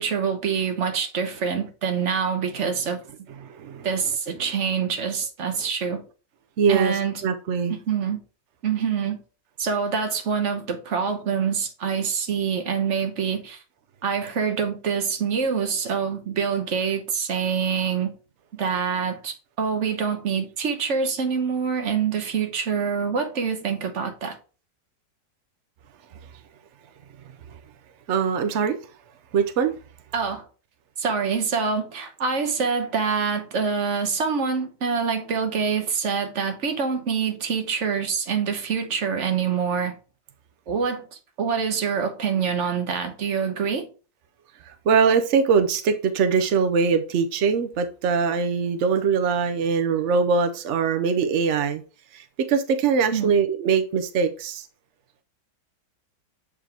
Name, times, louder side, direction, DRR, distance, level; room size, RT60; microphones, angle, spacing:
voice 1, 0.0-3.0 3.8-6.0 6.7-7.2 7.7-8.2 8.6-9.2 9.6-13.6 14.0-18.1 18.6-24.4 30.1-30.5 31.0-40.0 40.7-41.1 41.4-43.9 53.1-53.3, right 6 dB, 50° right, 1.1 m, -25 dB
voice 2, 3.3-4.6 5.6-5.7 6.6-7.7 28.1-28.8 29.3-29.8 44.7-51.8 52.1-54.7, right 5 dB, 75° right, 0.6 m, -22 dB
7.3 x 4.9 x 3.4 m
omnidirectional pair, 2.0 m